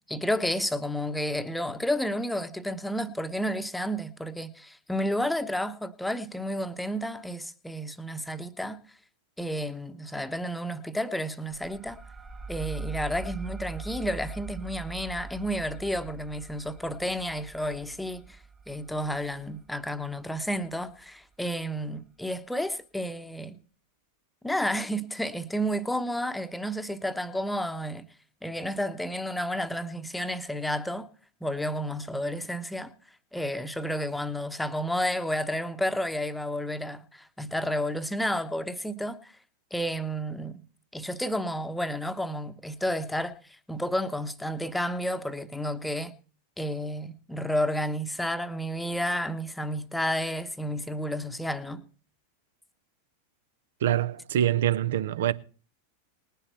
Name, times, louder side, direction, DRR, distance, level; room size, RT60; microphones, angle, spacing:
voice 1, 0.1-8.8 9.4-12.0 12.5-18.4 18.7-23.6 24.4-28.0 28.4-31.1 31.4-32.9 33.3-39.4 39.7-40.6 40.9-46.1 46.6-51.8, equal, 5° left, 1.1 m, -31 dB
sound 1, 11.5-20.7, right 4 dB, 15° right, 1.2 m, -42 dB
voice 2, 53.8-55.3, right 11 dB, 60° right, 0.8 m, -25 dB
20.0 x 10.0 x 4.3 m
figure-of-eight pair, 90°, 0 cm